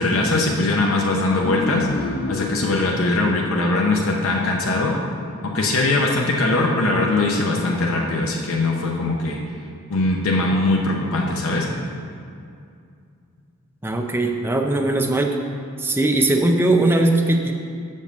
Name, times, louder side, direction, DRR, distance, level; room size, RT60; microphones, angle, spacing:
voice 1, 0.0-1.9 2.3-5.0 5.5-9.4 9.9-11.7, left 2 dB, 70° left, -1 dB, 0.8 m, -21 dB
sound 1, 1.4-4.6, left 3 dB, 50° left, 0.4 m, -29 dB
voice 2, 13.8-15.4 15.8-17.5, right 2 dB, 10° right, 2 dB, 0.5 m, -19 dB
6.5 x 5.4 x 6.7 m, 2.4 s
head